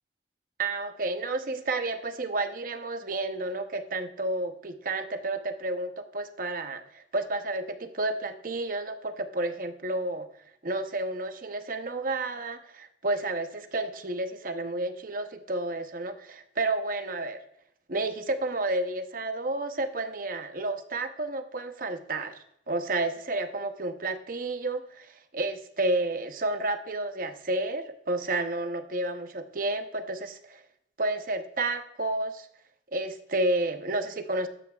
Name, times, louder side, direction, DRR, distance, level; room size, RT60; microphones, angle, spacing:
voice 1, 0.6-10.3 10.6-17.4 17.9-22.4 22.7-30.6 31.0-32.5 32.9-34.5, right 2 dB, 50° right, 8 dB, 0.8 m, -31 dB
13.0 x 9.0 x 2.4 m, 0.75 s
head